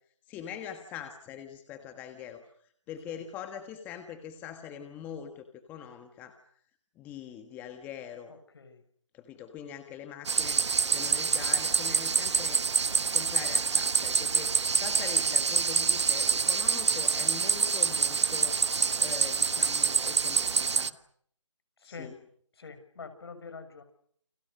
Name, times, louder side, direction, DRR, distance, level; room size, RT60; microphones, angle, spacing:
voice 1, 0.3-2.5 2.9-6.4 7.0-8.3 9.1-10.6 10.9-12.6 13.1-18.6 19.0-21.0 21.8-22.1, left 8 dB, 10° left, 7 dB, 1.5 m, -43 dB
voice 2, 8.3-8.8 21.8-22.1 22.5-23.8, left 4 dB, 50° left, 9 dB, 6.3 m, -46 dB
sound 1, 10.3-20.9, right 5 dB, 65° right, 1.1 m, -26 dB
29.5 x 27.5 x 6.6 m, 0.64 s
figure-of-eight pair, 155°, 16 cm